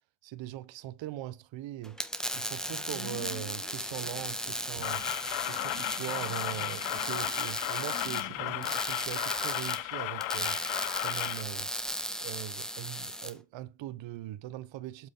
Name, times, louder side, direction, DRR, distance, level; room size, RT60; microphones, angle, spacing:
voice 1, 0.2-2.0 2.3-5.0 5.5-10.6 11.0-11.7 12.2-15.1, right 14 dB, 60° right, 1.0 m, -41 dB
sound 1, 1.8-13.3, equal, ahead, 1.4 m, -36 dB
sound 2, 2.7-8.8, left 7 dB, 40° left, 2.7 m, -49 dB
sound 3, 4.8-11.4, left 17 dB, 65° left, 0.7 m, -35 dB
7.4 x 6.1 x 3.8 m
cardioid pair, 105°, 50 cm